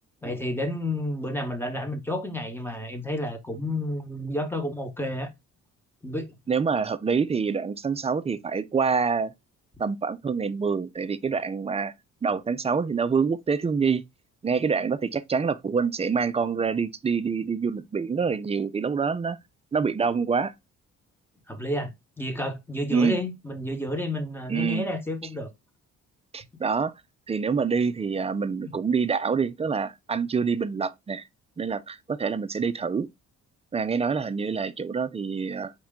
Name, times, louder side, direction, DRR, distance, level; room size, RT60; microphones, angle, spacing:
voice 1, 0.2-5.3 6.0-6.3 21.5-25.5 28.6-28.8, left 1 dB, 5° left, 1.1 m, -31 dB
voice 2, 6.5-9.3 9.8-11.9 12.2-14.0 14.4-19.4 19.7-20.5 22.9-23.2 24.5-24.9 26.3-26.9 27.3-31.2 31.6-33.1 33.7-35.7, right 5 dB, 20° right, 0.4 m, -26 dB
4.4 x 3.0 x 3.6 m
cardioid pair, 90°, 30 cm